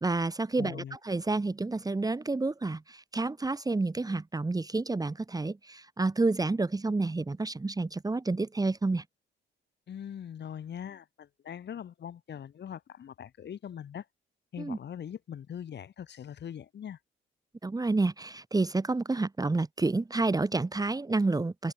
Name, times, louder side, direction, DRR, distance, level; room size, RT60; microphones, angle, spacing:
voice 1, 0.0-9.0 14.6-14.8 17.6-21.7, right 3 dB, 20° right, 1.7 m, -29 dB
voice 2, 0.6-1.0 9.9-14.1 14.5-17.0, left 9 dB, 60° left, 7.8 m, -41 dB
open air
cardioid pair, 90°, 20 cm